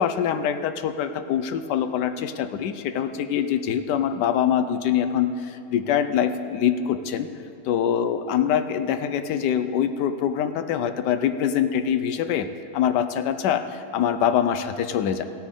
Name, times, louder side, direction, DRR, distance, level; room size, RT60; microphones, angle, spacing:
voice 1, 0.0-7.3 7.6-12.5 12.7-15.2, left 9 dB, 85° left, 10 dB, 1.3 m, -24 dB
16.5 x 9.0 x 3.7 m, 2.6 s
omnidirectional pair, 1.8 m